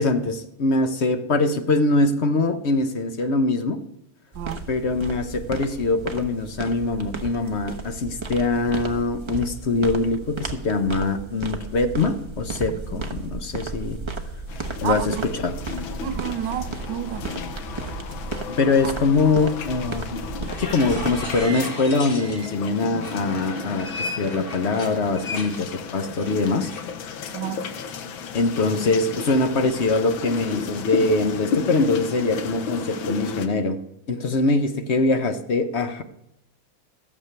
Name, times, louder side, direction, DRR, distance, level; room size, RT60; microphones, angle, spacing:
voice 1, 0.0-3.8 4.7-14.0 14.8-15.5 18.5-20.2 20.6-26.7 28.3-33.8 34.1-36.0, left 3 dB, 50° left, 0.8 m, -23 dB
sound 1, 4.3-21.4, right 3 dB, 20° right, 0.8 m, -34 dB
voice 2, 4.3-4.7 12.7-13.0 14.8-15.3 16.0-17.3 18.8-18.9 27.3-27.7, right 11 dB, 70° right, 1.3 m, -30 dB
sound 2, 14.5-33.5, left 5 dB, 85° left, 1.8 m, -33 dB
sound 3, 20.5-22.6 23.0-26.8, left 2 dB, 30° left, 1.6 m, -35 dB
14.5 x 7.5 x 6.7 m
omnidirectional pair, 2.1 m